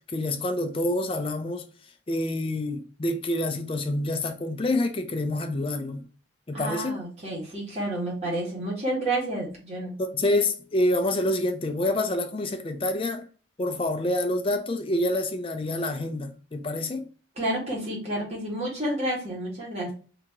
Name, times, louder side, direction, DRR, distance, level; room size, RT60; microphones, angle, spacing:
voice 1, 0.0-1.6 2.1-6.1 6.5-7.0 10.0-13.3 13.6-17.1, left 1 dB, 30° left, 0.4 m, -27 dB
voice 2, 6.5-9.9 17.4-19.9, right 1 dB, 35° right, 1.4 m, -30 dB
2.8 x 2.8 x 3.6 m
head